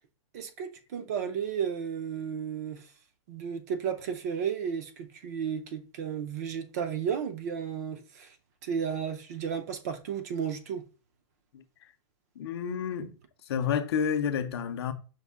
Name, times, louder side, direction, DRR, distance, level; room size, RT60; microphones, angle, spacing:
voice 1, 0.3-2.8 3.3-8.3 8.6-10.8, right 7 dB, 30° right, 0.4 m, -33 dB
voice 2, 12.4-13.1 13.5-14.9, left 7 dB, 55° left, 0.5 m, -30 dB
5.4 x 2.1 x 3.5 m
supercardioid pair, 175°, 16 cm